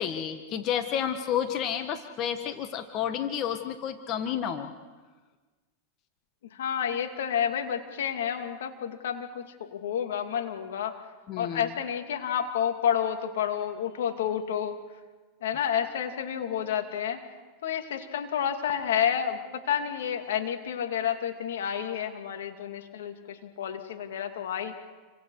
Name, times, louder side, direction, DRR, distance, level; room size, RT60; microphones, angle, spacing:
voice 1, 0.0-4.7 11.3-11.7, left 9 dB, 45° left, 7 dB, 1.7 m, -30 dB
voice 2, 6.5-11.0 11.4-14.8 15.4-17.2 17.6-24.7, left 9 dB, 80° left, 5 dB, 2.6 m, -30 dB
29.5 x 25.0 x 4.9 m, 1.3 s
hypercardioid pair, 110°, 0 cm